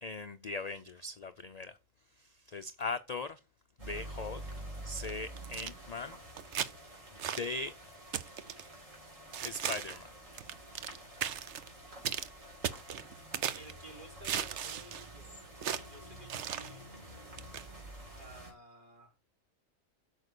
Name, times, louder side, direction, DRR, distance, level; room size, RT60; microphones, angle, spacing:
voice 1, 0.0-1.8 2.1-3.4 3.8-4.4 4.8-6.2 7.3-7.7 9.4-10.2, left 3 dB, 45° left, 0.5 m, -40 dB
sound 1, 3.8-18.5, right 1 dB, 85° right, 4.5 m, -48 dB
sound 2, 5.0-5.7 6.4-6.7 7.2-7.5 8.1-8.7 9.3-10.0 10.4-11.0 11.2-11.7 12.0-12.3 12.6-13.7 14.2-15.1 15.6-15.8 16.3-16.7 17.4-17.6, right 9 dB, 65° right, 1.0 m, -36 dB
voice 2, 13.5-16.8 18.2-19.1, right 1 dB, 40° right, 4.8 m, -53 dB
8.2 x 6.5 x 6.7 m
omnidirectional pair, 1.3 m